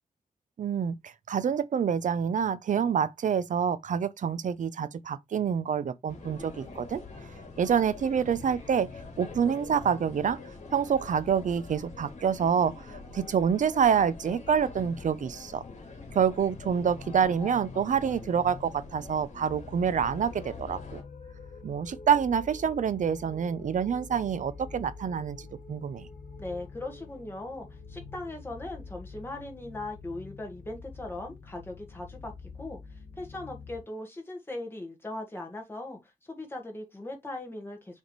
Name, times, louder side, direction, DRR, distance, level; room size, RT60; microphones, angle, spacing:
voice 1, 0.6-7.0 7.6-8.9 9.2-10.4 10.7-15.6 16.1-21.0 21.6-25.4 25.7-26.1, right 7 dB, 65° right, 0.6 m, -27 dB
sound 1, 6.1-21.0, left 3 dB, 60° left, 2.6 m, -44 dB
sound 2, 19.5-33.8, left 4 dB, 85° left, 1.5 m, -46 dB
voice 2, 26.4-32.8 33.2-38.0, left 2 dB, 15° left, 1.9 m, -39 dB
6.5 x 3.6 x 4.6 m
wide cardioid pair, 180°, 14 cm